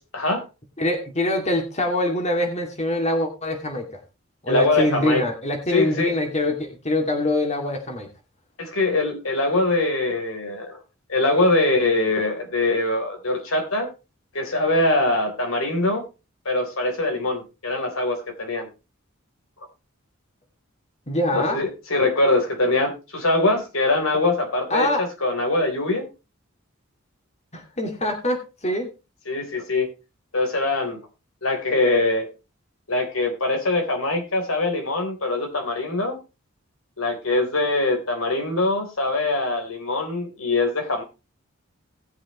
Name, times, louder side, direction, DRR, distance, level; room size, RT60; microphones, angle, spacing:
voice 1, 0.8-3.9 4.4-8.1 21.1-21.6 24.7-25.0 27.5-28.9, left 1 dB, 30° left, 4 dB, 2.5 m, -24 dB
voice 2, 4.5-5.2 5.7-6.1 8.6-10.8 11.1-13.9 14.3-16.0 16.5-18.7 21.3-26.0 29.3-29.9 30.3-31.0 31.4-32.3 32.9-36.2 37.0-41.0, left 2 dB, 85° left, 4 dB, 3.7 m, -23 dB
19.0 x 7.4 x 3.1 m, 0.28 s
head